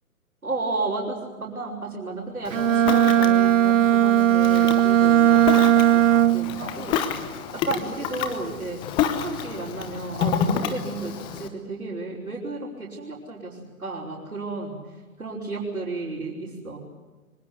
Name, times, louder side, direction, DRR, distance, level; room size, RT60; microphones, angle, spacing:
voice 1, 0.4-5.4 5.9-7.0 7.6-8.8 9.1-14.8 15.2-16.8, right 3 dB, 75° right, -5 dB, 5.7 m, -33 dB
Ocean, 2.4-11.5, left 8 dB, 10° left, 0.8 m, -30 dB
Bowed string instrument, 2.5-6.6, right 11 dB, 60° right, 0.7 m, -18 dB
24.5 x 20.5 x 8.3 m, 1.3 s
figure-of-eight pair, 130°, 43 cm